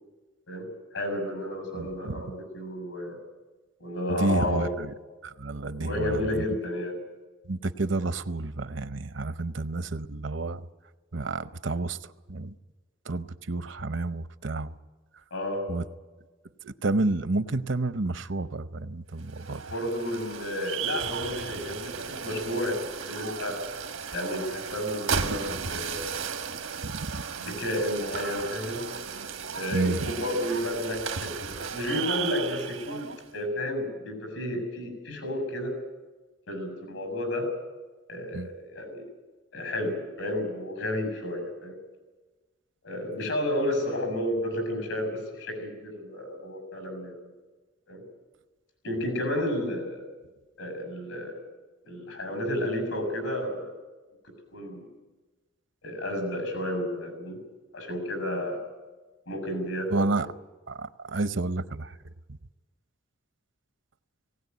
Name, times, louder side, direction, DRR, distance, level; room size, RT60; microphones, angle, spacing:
voice 1, 0.9-3.2 3.8-4.8 5.6-7.0 15.3-15.7 19.6-22.8 23.1-23.6 24.1-26.3 27.4-28.8 29.5-35.8 36.5-37.5 38.1-39.1 39.5-41.8 42.8-47.2 47.9-48.0 48.8-50.1 50.6-51.4 51.8-53.7 54.2-54.9 55.8-57.4 57.7-58.6 59.3-59.9, left 1 dB, 85° left, 6 dB, 6.5 m, -31 dB
voice 2, 1.7-2.2 4.1-4.9 5.2-6.5 7.5-10.7 11.1-12.5 13.0-14.8 15.7-15.8 16.6-19.6 26.8-27.2 29.7-30.0 38.3-38.5 59.9-60.3 60.7-62.0, right 2 dB, 65° right, 13 dB, 0.7 m, -30 dB
sound 1, 19.2-33.3, right 6 dB, 90° right, 1.3 m, -35 dB
19.0 x 17.5 x 9.4 m, 1.3 s
head